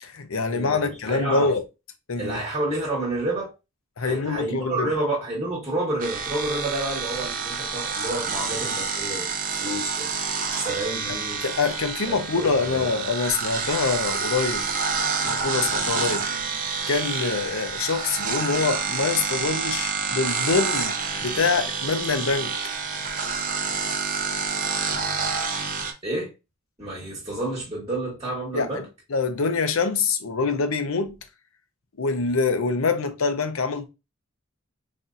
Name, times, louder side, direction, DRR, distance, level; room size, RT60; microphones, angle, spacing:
voice 1, 0.0-1.6 2.1-2.4 4.0-4.9 10.6-10.7 11.1-11.2 11.4-14.7 15.2-22.5 28.5-28.8 29.1-31.2 32.0-33.9, left 4 dB, 75° left, 0.7 m, -25 dB
voice 2, 1.1-1.5 2.2-3.5 4.0-9.3 9.6-10.1 10.6-11.4 12.1-12.9 26.0-26.3 26.8-28.8, right 2 dB, 20° right, 1.2 m, -29 dB
sound 1, 6.0-25.9, right 5 dB, 40° right, 0.6 m, -28 dB
4.2 x 2.6 x 2.4 m
head